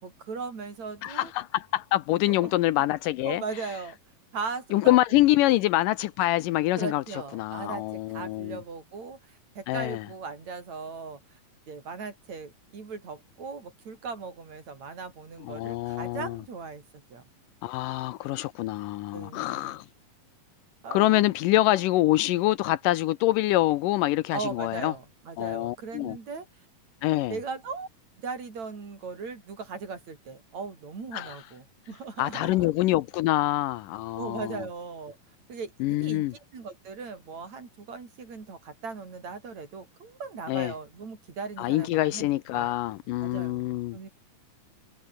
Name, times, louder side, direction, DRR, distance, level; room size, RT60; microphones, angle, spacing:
voice 1, 0.0-1.3 2.3-2.8 3.2-4.0 4.3-5.0 5.5-5.6 6.7-11.2 11.7-16.8 17.1-17.2 19.1-19.7 20.8-21.2 24.3-26.5 27.3-27.9 28.2-32.7 34.1-35.2 35.5-42.8 43.2-44.1, right 4 dB, 50° right, 5.6 m, -38 dB
voice 2, 1.0-3.4 4.7-7.0 7.3-8.6 9.7-10.0 15.4-16.4 17.6-19.9 20.9-24.9 25.4-26.2 27.0-27.4 31.1-31.4 32.2-34.6 35.8-36.3 40.5-40.7 41.6-44.0, left 16 dB, 80° left, 2.2 m, -25 dB
omnidirectional pair, 4.1 m